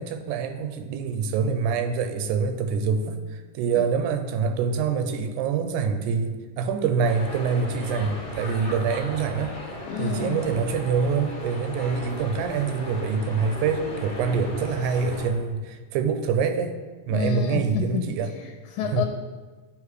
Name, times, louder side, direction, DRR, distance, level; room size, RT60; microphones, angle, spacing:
voice 1, 0.0-9.5 10.0-16.7 17.1-18.3 18.9-19.1, right 5 dB, 85° right, 7 dB, 2.1 m, -25 dB
sound 1, 7.0-15.3, left 2 dB, 35° left, 0.8 m, -37 dB
voice 2, 9.9-10.5 17.1-18.1 18.4-19.1, left 9 dB, 80° left, 5 dB, 1.9 m, -30 dB
10.5 x 3.5 x 4.8 m, 1.3 s
omnidirectional pair, 3.5 m